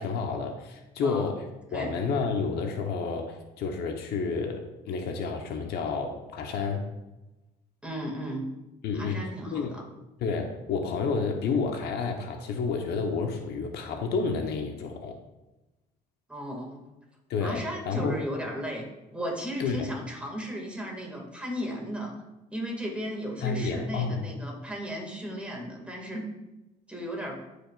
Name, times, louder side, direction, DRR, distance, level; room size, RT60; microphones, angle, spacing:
voice 1, 0.0-1.5 1.7-6.9 8.8-9.8 10.2-15.1 17.3-18.2 19.6-19.9 23.4-24.3, left 4 dB, 70° left, 3 dB, 1.1 m, -30 dB
voice 2, 7.8-8.5 8.9-9.8 16.3-16.8 17.4-18.8 19.1-22.2 22.5-26.3 26.9-27.4, equal, 5° right, -1 dB, 2.2 m, -35 dB
13.0 x 5.1 x 2.5 m, 1.0 s
cardioid pair, 110°, 17 cm